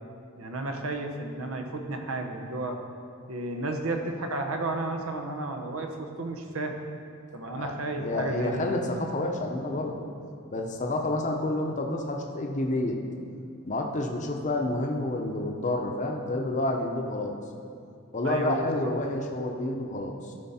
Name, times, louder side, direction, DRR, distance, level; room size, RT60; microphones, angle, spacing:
voice 1, 0.4-2.8 3.3-6.7 7.3-8.7 18.2-18.9, right 2 dB, 80° right, 4 dB, 0.9 m, -32 dB
voice 2, 7.5-10.0 10.5-13.0 13.7-17.3 18.1-20.4, left 2 dB, 35° left, 2 dB, 0.7 m, -29 dB
13.0 x 5.1 x 4.2 m, 2.6 s
head